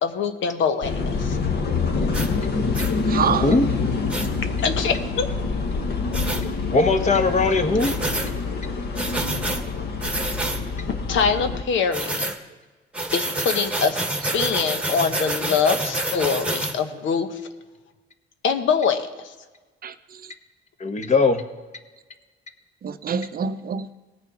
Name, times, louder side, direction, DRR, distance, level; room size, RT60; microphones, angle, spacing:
voice 1, 0.0-1.4 4.6-5.3 11.1-12.3 13.1-17.4 18.4-19.3, left 6 dB, 75° left, 1.0 m, -24 dB
sound 1, 0.8-11.6, left 4 dB, 55° left, 1.4 m, -26 dB
sound 2, 2.1-2.3 2.7-2.9 4.1-4.3 6.1-6.4 7.8-8.3 9.0-9.6 10.0-10.6 11.9-12.4 12.9-16.7, right 2 dB, 5° right, 1.3 m, -27 dB
voice 2, 3.1-3.6 19.8-20.3 22.8-23.9, right 7 dB, 50° right, 0.6 m, -27 dB
voice 3, 6.7-7.9 20.8-21.4, left 3 dB, 35° left, 1.2 m, -19 dB
18.5 x 6.6 x 5.0 m
cardioid pair, 90°, 20 cm